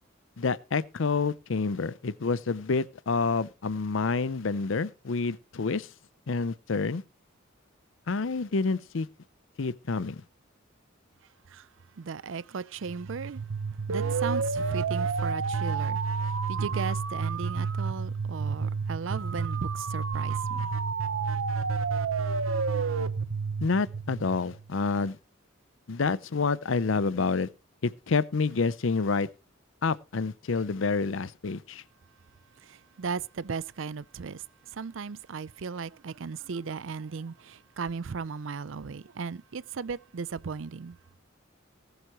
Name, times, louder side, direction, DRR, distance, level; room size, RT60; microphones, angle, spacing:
voice 1, 0.4-5.9 6.3-7.0 8.1-9.1 9.6-10.2 23.6-25.2 25.9-27.5 27.8-29.3 29.8-31.8, left 4 dB, 70° left, 0.6 m, -28 dB
voice 2, 12.0-13.4 13.9-20.7 32.6-34.4 34.7-41.0, right 5 dB, 70° right, 0.5 m, -36 dB
sound 1, 12.9-24.7, right 5 dB, 90° right, 0.9 m, -30 dB
19.5 x 8.0 x 3.0 m
head